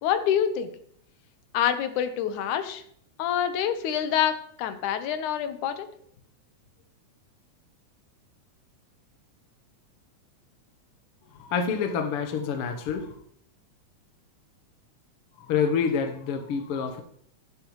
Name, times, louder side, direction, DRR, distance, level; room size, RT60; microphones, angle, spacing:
voice 1, 0.0-0.7 1.5-2.8 3.2-5.9, left 9 dB, 80° left, 9 dB, 2.4 m, -26 dB
voice 2, 11.4-13.1 15.4-17.0, left 6 dB, 65° left, 5 dB, 1.6 m, -27 dB
11.5 x 10.5 x 3.1 m, 0.64 s
omnidirectional pair, 3.5 m